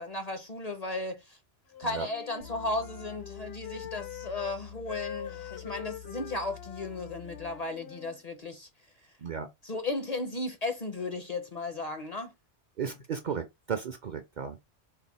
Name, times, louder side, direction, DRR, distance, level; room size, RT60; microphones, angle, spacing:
voice 1, 0.0-1.4 1.8-8.7 9.6-12.3, left 2 dB, 45° left, 0.6 m, -35 dB
Wind instrument woodwind instrument, 1.7-4.6 4.9-8.2, left 9 dB, 65° left, 0.9 m, -43 dB
sound 1, 2.4-7.7, left 8 dB, 90° left, 1.4 m, -48 dB
voice 2, 12.8-14.6, right 6 dB, 55° right, 0.6 m, -34 dB
4.7 x 2.1 x 4.0 m
omnidirectional pair, 1.2 m